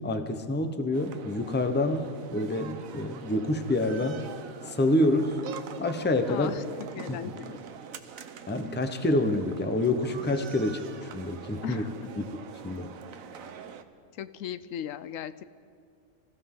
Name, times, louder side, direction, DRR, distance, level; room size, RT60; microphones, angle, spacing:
voice 1, 0.0-4.2 4.7-5.4 5.8-6.5 7.1-7.2 8.5-11.8 12.2-12.3 12.6-12.9, left 1 dB, 10° left, 8 dB, 0.6 m, -27 dB
sound 1, 0.9-13.8, right 7 dB, 90° right, 1.2 m, -44 dB
voice 2, 6.3-7.6 11.6-12.3 14.1-15.4, left 9 dB, 80° left, 14 dB, 1.0 m, -38 dB
26.5 x 14.5 x 3.7 m, 2.2 s
omnidirectional pair, 1.4 m